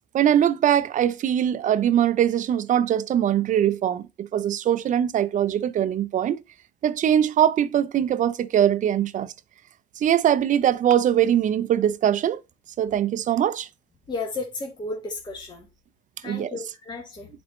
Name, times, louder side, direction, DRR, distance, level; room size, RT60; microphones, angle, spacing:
voice 1, 0.1-6.4 6.8-9.3 10.0-12.4 12.8-13.7 16.2-16.6, right 10 dB, 50° right, 0.5 m, -22 dB
voice 2, 14.1-15.6 16.2-17.3, left 3 dB, 25° left, 1.7 m, -33 dB
9.9 x 4.3 x 3.1 m
cardioid pair, 110°, 17 cm